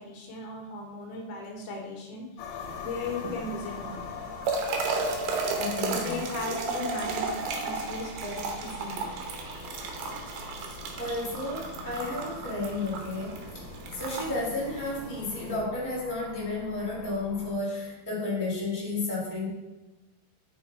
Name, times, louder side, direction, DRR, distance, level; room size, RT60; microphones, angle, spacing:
voice 1, 0.0-4.0 5.9-7.3 7.6-9.1, left 3 dB, 75° left, 0 dB, 2.8 m, -37 dB
sound 1, 2.4-17.6, left 6 dB, 90° left, 2.8 m, -44 dB
sound 2, 2.6-15.6, right 4 dB, 85° right, 3.2 m, -34 dB
voice 2, 5.5-6.2 11.0-13.4 13.9-19.5, left 2 dB, 10° right, -7 dB, 1.3 m, -32 dB
6.1 x 5.9 x 4.1 m, 1.1 s
omnidirectional pair, 4.8 m